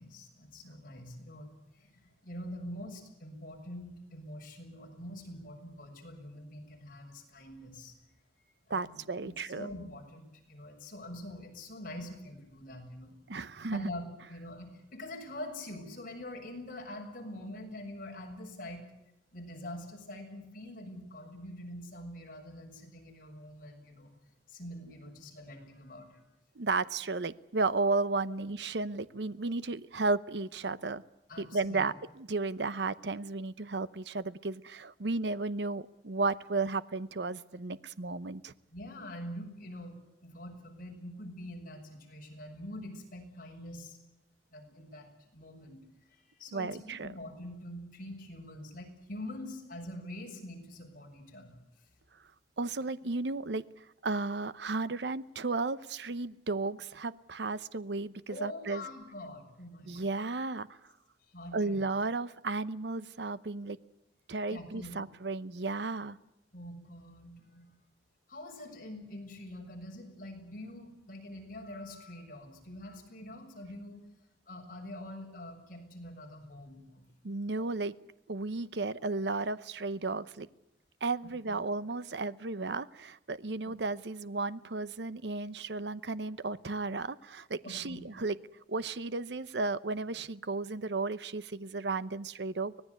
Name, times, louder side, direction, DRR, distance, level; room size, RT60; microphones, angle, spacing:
voice 1, 0.0-8.0 8.7-13.2 13.7-18.8 19.3-24.1 24.5-26.2 31.3-31.8 38.7-44.0 44.5-45.8 46.1-51.9 58.3-60.1 61.3-61.8 64.5-65.0 66.5-67.7 68.3-74.0 74.5-77.0 77.6-77.7 81.5-81.6 83.6-83.7 87.6-88.0, left 1 dB, 50° left, 1 dB, 6.8 m, -45 dB
voice 2, 8.7-9.7 13.3-13.8 26.6-31.0 31.4-38.5 46.5-47.1 52.6-53.6 54.0-58.8 59.9-60.7 61.5-63.8 64.3-66.2 77.2-78.0 78.3-80.5 81.0-88.4 88.7-92.8, right 3 dB, 70° right, 16 dB, 0.8 m, -34 dB
25.0 x 18.5 x 8.2 m, 0.88 s
head